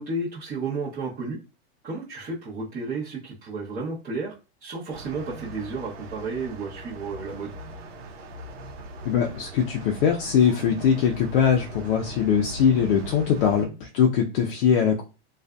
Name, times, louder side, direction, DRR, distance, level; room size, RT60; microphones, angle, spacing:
voice 1, 0.0-1.4 1.8-4.3 4.6-7.5 13.4-13.5, right 3 dB, 30° right, -9 dB, 0.8 m, -32 dB
sound 1, 4.9-13.7, right 1 dB, 75° right, 0.8 m, -40 dB
voice 2, 9.0-15.0, left 7 dB, 60° left, 2 dB, 0.5 m, -22 dB
2.5 x 2.3 x 2.2 m, 0.32 s
hypercardioid pair, 130°, 31 cm